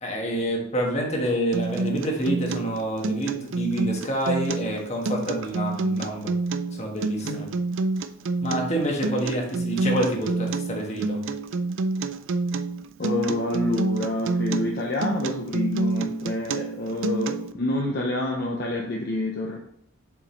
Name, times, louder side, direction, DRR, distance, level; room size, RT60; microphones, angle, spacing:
voice 1, 0.0-6.3 6.7-7.5 8.4-11.2, right 1 dB, 30° left, 0 dB, 1.3 m, -27 dB
Acoustic guitar, 1.5-17.5, right 3 dB, 65° right, 0.4 m, -28 dB
voice 2, 13.0-19.6, left 1 dB, 50° left, 0 dB, 0.7 m, -27 dB
7.1 x 5.0 x 3.1 m, 0.71 s
head